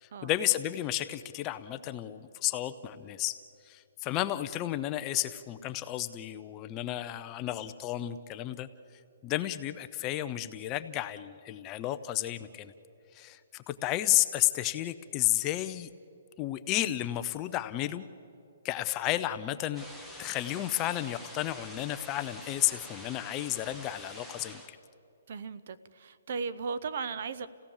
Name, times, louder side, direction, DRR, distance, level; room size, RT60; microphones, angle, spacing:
voice 1, 0.0-3.4 3.6-8.7 9.2-12.7 13.1-15.9 16.4-18.0 18.6-19.9 20.2-24.8, left 14 dB, 20° left, 11 dB, 0.6 m, -32 dB
sound 1, 19.7-24.7, left 1 dB, 5° right, 1.1 m, -47 dB
voice 2, 25.3-27.5, right 5 dB, 50° right, 15 dB, 0.8 m, -36 dB
29.5 x 17.0 x 7.2 m, 2.6 s
hypercardioid pair, 165°, 0 cm